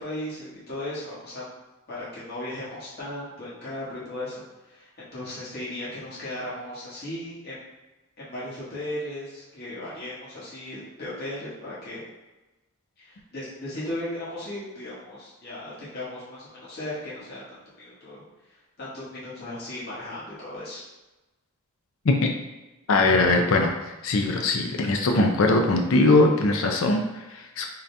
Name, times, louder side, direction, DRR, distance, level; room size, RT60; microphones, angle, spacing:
voice 1, 0.0-1.5 1.9-7.5 8.2-12.0 13.0-17.4 17.8-18.2 18.8-20.8, left 1 dB, 45° left, -8 dB, 1.3 m, -36 dB
voice 2, 22.9-23.7 24.0-27.7, left 2 dB, 65° left, 2 dB, 0.5 m, -21 dB
3.8 x 2.7 x 3.3 m, 1.1 s
head